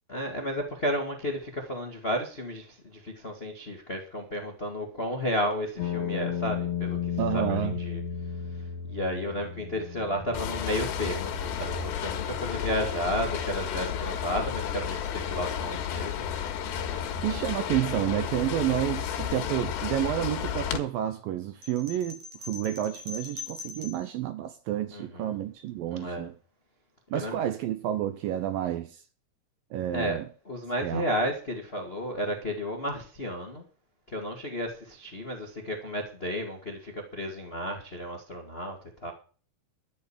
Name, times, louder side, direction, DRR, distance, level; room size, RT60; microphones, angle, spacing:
voice 1, 0.1-8.0 8.5-16.3 24.9-25.4 25.9-26.3 27.1-27.3 29.9-30.2 30.4-33.6 34.1-39.1, equal, 65° left, 0.5 m, -33 dB
sound 1, 5.8-19.8, left 7 dB, 50° left, 2.5 m, -37 dB
voice 2, 7.2-7.8 17.2-26.3 27.1-29.0 29.7-30.3 30.8-31.1, right 12 dB, 80° right, 2.1 m, -30 dB
sound 2, 10.3-20.8, left 9 dB, 85° left, 3.8 m, -32 dB
sound 3, 21.6-24.1, left 3 dB, 40° right, 3.5 m, -41 dB
12.5 x 6.5 x 8.6 m
omnidirectional pair, 4.9 m